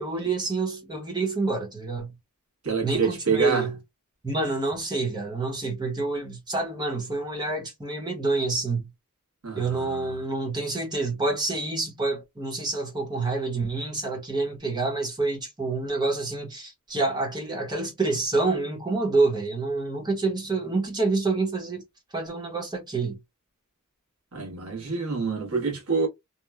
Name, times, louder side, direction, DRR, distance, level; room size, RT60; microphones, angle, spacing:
voice 1, 0.0-2.1 2.8-3.8 4.2-8.9 9.5-21.8 22.1-23.2, right 3 dB, 20° right, 0.9 m, -27 dB
voice 2, 2.6-3.7 9.4-10.2 24.3-26.1, right 5 dB, 85° right, 1.3 m, -27 dB
2.9 x 2.2 x 2.2 m
head